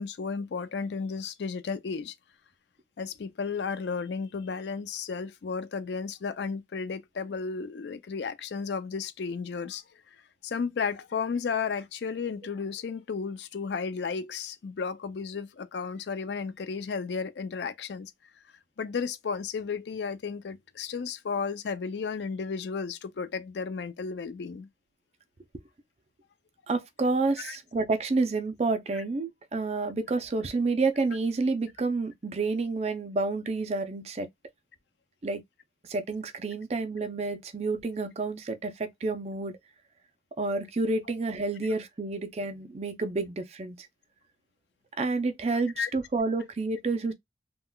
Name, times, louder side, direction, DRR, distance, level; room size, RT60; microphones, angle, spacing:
voice 1, 0.0-2.1 3.0-9.8 10.4-18.1 18.8-24.7 27.4-27.6 45.8-45.9, left 5 dB, 70° left, 0.4 m, -33 dB
voice 2, 26.7-34.3 35.2-35.4 35.8-39.6 40.4-43.9 45.0-47.1, right 3 dB, 35° right, 0.4 m, -29 dB
3.6 x 2.2 x 2.2 m
head